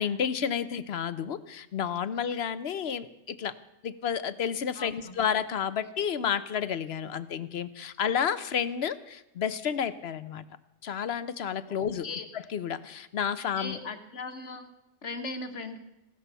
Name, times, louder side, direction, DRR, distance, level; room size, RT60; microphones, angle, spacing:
voice 1, 0.0-3.5 3.8-10.4 10.8-12.1 12.3-13.8, left 8 dB, 65° left, 15 dB, 1.0 m, -31 dB
voice 2, 4.8-5.1 11.7-11.8 12.0-12.3 13.4-14.7 15.0-15.8, left 3 dB, 80° left, 8 dB, 1.7 m, -38 dB
17.0 x 13.0 x 5.6 m, 0.91 s
omnidirectional pair, 1.2 m